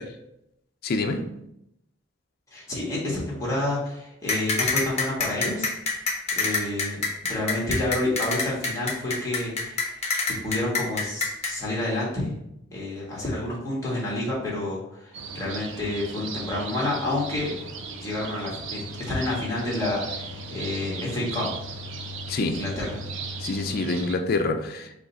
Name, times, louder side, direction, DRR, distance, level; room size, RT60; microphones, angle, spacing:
voice 1, 0.8-1.3 22.3-22.7 23.4-24.9, left 3 dB, 50° left, 0.4 m, -26 dB
voice 2, 2.5-5.7 6.3-7.0 7.3-10.0 10.2-12.3 12.7-17.5 18.0-21.5 22.4-22.9, left 1 dB, 15° left, 1.5 m, -29 dB
sound 1, 4.3-11.5, left 4 dB, 35° left, 0.9 m, -25 dB
sound 2, 15.1-24.2, right 3 dB, 70° right, 0.5 m, -37 dB
5.0 x 2.4 x 4.0 m
head